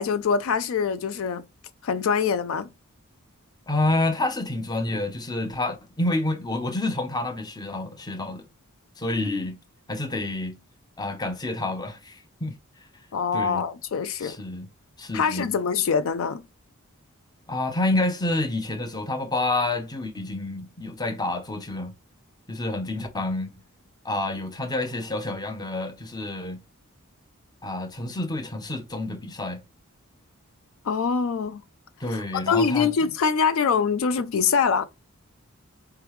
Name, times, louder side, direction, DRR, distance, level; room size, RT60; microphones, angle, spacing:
voice 1, 0.0-1.4 1.8-2.7 13.1-14.4 15.1-16.4 30.8-31.6 32.1-34.8, left 6 dB, 65° left, 0.4 m, -24 dB
voice 2, 3.7-8.4 9.0-9.6 9.9-10.6 11.0-12.6 13.3-13.6 14.2-14.7 15.0-15.5 17.5-21.9 22.5-23.5 24.0-26.6 27.6-29.6 32.0-32.9, left 2 dB, 20° left, 0.7 m, -28 dB
4.6 x 3.4 x 3.0 m
head